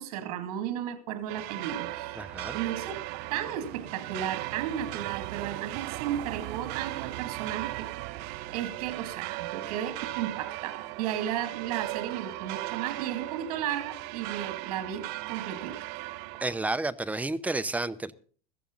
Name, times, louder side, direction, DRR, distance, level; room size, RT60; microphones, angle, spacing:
voice 1, 0.0-2.3 2.5-3.0 3.3-7.9 8.1-15.9, right 10 dB, 85° right, 2.5 m, -34 dB
sound 1, 1.3-16.6, right 18 dB, 60° right, 0.9 m, -37 dB
voice 2, 2.2-2.6 16.4-18.1, right 2 dB, 10° right, 0.6 m, -31 dB
15.5 x 14.5 x 3.9 m
supercardioid pair, 140°, 19 cm